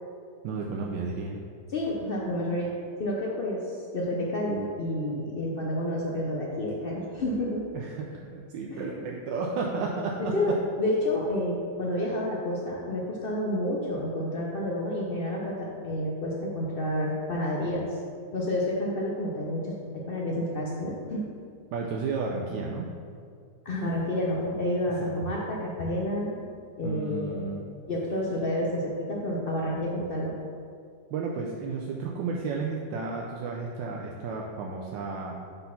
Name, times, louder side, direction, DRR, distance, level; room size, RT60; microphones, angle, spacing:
voice 1, 0.4-1.4 7.7-10.3 21.7-22.9 25.0-25.1 26.8-27.6 31.1-35.3, right 4 dB, 90° right, -1 dB, 1.3 m, -32 dB
voice 2, 1.7-2.7 3.0-7.6 8.7-8.9 10.2-10.5 10.8-17.9 18.3-21.3 23.6-26.4 26.8-27.5 27.9-30.4, left 1 dB, 80° left, -3 dB, 0.5 m, -29 dB
5.3 x 4.1 x 5.6 m, 2.3 s
omnidirectional pair, 1.9 m